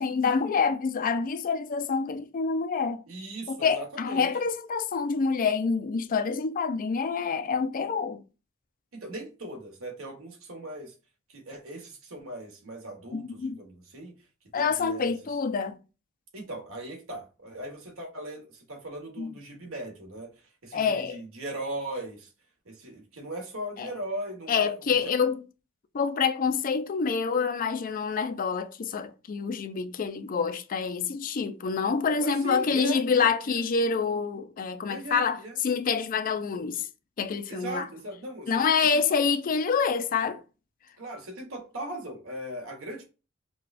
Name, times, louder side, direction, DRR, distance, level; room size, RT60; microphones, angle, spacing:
voice 1, 0.0-3.0 3.5-8.2 13.1-13.6 14.5-15.8 19.2-19.3 20.7-21.2 23.8-23.9 24.5-25.4 25.9-36.9 37.2-37.9 38.5-40.4, left 5 dB, 40° left, 0.4 m, -27 dB
voice 2, 3.1-4.3 8.9-10.9 11.3-14.1 14.5-15.1 16.3-20.3 20.6-22.3 22.6-25.1 32.2-33.6 34.9-35.6 37.5-38.6 41.0-43.0, right 1 dB, 75° right, 1.3 m, -39 dB
4.9 x 2.3 x 2.4 m
head